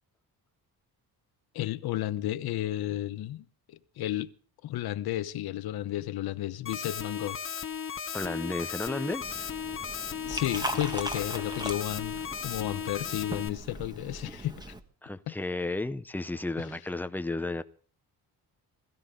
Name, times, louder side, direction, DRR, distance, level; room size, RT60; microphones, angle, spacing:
voice 1, 1.5-3.4 4.0-4.3 4.6-7.4 10.2-14.7 15.3-15.4 16.7-16.8, left 13 dB, 70° left, 1.1 m, -32 dB
sound 1, 6.7-13.5, left 7 dB, 30° left, 1.0 m, -36 dB
voice 2, 8.1-9.5 15.0-17.6, left 2 dB, 5° left, 0.7 m, -33 dB
Liquid, 9.2-14.8, right 1 dB, 10° right, 1.3 m, -39 dB
20.5 x 15.5 x 3.8 m
cardioid pair, 175°, 39 cm